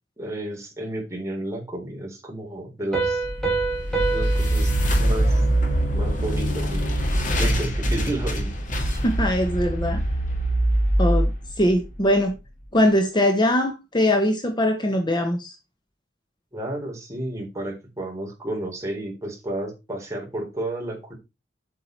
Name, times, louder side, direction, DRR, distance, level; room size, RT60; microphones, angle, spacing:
voice 1, 0.2-3.2 4.1-4.7 5.0-5.4 5.9-6.9 7.3-8.5 16.5-21.1, right 1 dB, 15° right, 4.1 m, -32 dB
Piano, 2.9-6.3, right 4 dB, ahead, 5.0 m, -28 dB
sound 1, 3.2-12.4, right 1 dB, 45° left, 2.5 m, -23 dB
voice 2, 9.0-10.0 11.0-11.3 11.6-12.4 12.7-15.5, left 1 dB, 25° left, 1.1 m, -21 dB
8.3 x 8.2 x 4.5 m
head